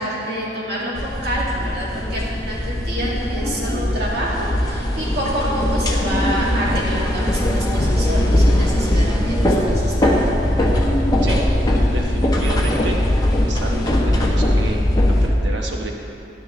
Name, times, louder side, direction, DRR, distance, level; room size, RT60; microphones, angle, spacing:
voice 1, 0.0-9.4 9.6-10.2, equal, 60° right, -6 dB, 2.4 m, -27 dB
sound 1, 0.9-15.3, left 1 dB, 20° left, 1.1 m, -19 dB
voice 2, 11.9-14.8 15.2-15.9, right 2 dB, 85° right, 1 dB, 1.2 m, -30 dB
11.5 x 10.0 x 3.3 m, 2.8 s
head